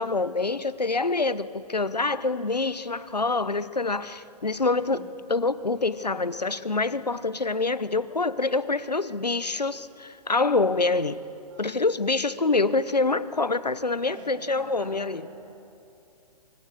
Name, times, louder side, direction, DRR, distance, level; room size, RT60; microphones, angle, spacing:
voice 1, 0.0-5.0 5.3-11.2 11.6-15.2, left 3 dB, 85° left, 1.0 m, -26 dB
voice 2, 14.1-15.6, right 2 dB, 45° right, 7.2 m, -47 dB
25.5 x 24.5 x 7.8 m
figure-of-eight pair, 125°, 20 cm